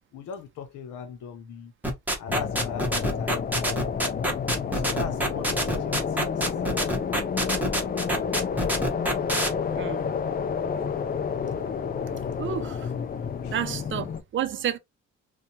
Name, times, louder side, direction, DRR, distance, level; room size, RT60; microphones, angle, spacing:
voice 1, 0.1-1.7 2.2-3.5 4.7-6.4 13.4-13.6, left 7 dB, 80° left, 0.7 m, -38 dB
sound 1, 1.8-9.5, right 1 dB, 5° right, 1.0 m, -26 dB
sound 2, 2.3-14.2, left 6 dB, 30° left, 0.4 m, -30 dB
voice 2, 12.1-12.9 13.5-14.8, right 9 dB, 40° right, 0.5 m, -31 dB
2.6 x 2.3 x 2.7 m
cardioid pair, 90°, 30 cm